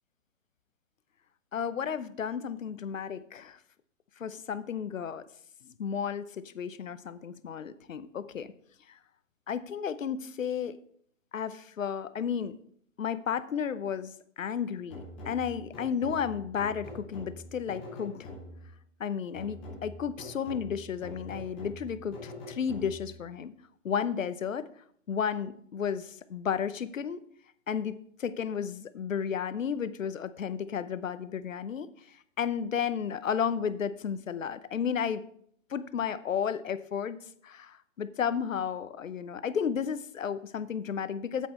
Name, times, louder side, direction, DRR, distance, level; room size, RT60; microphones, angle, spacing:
voice 1, 1.5-3.6 4.2-5.2 5.6-8.5 8.9-9.0 9.5-10.8 11.3-12.6 13.0-18.3 19.0-23.5 23.8-24.7 25.1-27.2 27.7-31.9 32.4-35.2 35.7-37.2 37.4-41.5, left 7 dB, 85° left, 14 dB, 0.9 m, -33 dB
sound 1, 14.9-18.8 19.3-23.2, left 1 dB, 5° left, 0.4 m, -45 dB
8.4 x 8.4 x 4.3 m, 0.63 s
hypercardioid pair, 145°, 38 cm